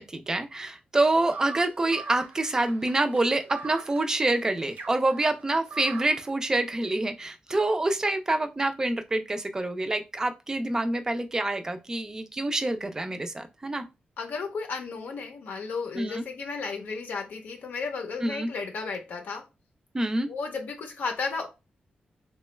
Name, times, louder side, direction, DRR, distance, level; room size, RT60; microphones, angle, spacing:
voice 1, 0.0-13.8 16.0-16.2 18.2-18.5 19.9-20.3, right 2 dB, 20° right, 0.4 m, -27 dB
sound 1, 1.3-6.3, right 4 dB, 75° right, 0.6 m, -42 dB
voice 2, 14.2-19.5 20.3-21.5, left 4 dB, 85° left, 0.6 m, -34 dB
2.9 x 2.2 x 3.1 m
wide cardioid pair, 130°, 3 cm